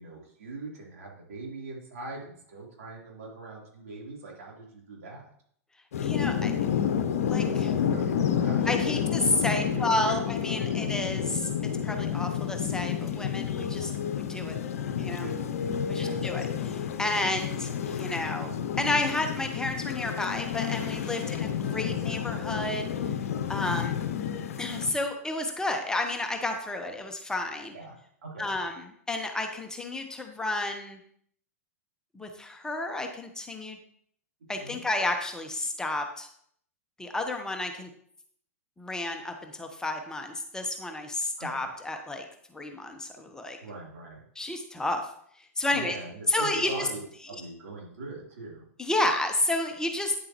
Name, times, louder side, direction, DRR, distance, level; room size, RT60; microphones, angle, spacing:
voice 1, 0.0-5.2 7.8-10.2 14.8-15.5 15.9-16.3 21.1-21.5 23.6-23.9 27.7-28.5 34.5-34.8 41.4-41.7 43.6-44.2 45.7-47.0 47.3-48.6, right 3 dB, 70° right, -3 dB, 3.4 m, -42 dB
sound 1, 5.9-24.9, left 8 dB, 70° left, 0.7 m, -30 dB
voice 2, 6.0-6.5 7.3-7.7 8.7-11.5 11.8-14.6 15.0-15.3 15.9-22.9 23.5-24.0 24.6-27.7 28.4-28.7 29.1-31.0 32.1-33.8 34.5-36.3 37.0-37.9 38.8-42.2 42.5-43.6 44.4-45.0 45.6-45.9 46.3-46.7 48.8-50.1, left 2 dB, 10° left, 4 dB, 1.0 m, -31 dB
9.4 x 7.5 x 3.0 m, 0.65 s
hypercardioid pair, 105°, 8 cm